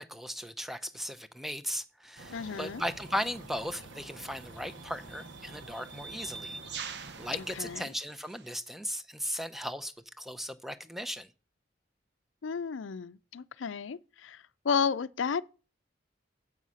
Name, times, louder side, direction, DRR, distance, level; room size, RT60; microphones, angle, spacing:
voice 1, 0.0-11.3, equal, ahead, 0.6 m, -37 dB
sound 1, 2.2-7.8, right 2 dB, 85° right, 1.2 m, -48 dB
voice 2, 2.3-2.8 7.3-7.9 12.4-15.4, left 6 dB, 85° left, 0.5 m, -33 dB
sound 2, 3.2-3.4 4.4-8.6, right 6 dB, 60° right, 0.8 m, -45 dB
8.3 x 5.6 x 6.2 m
head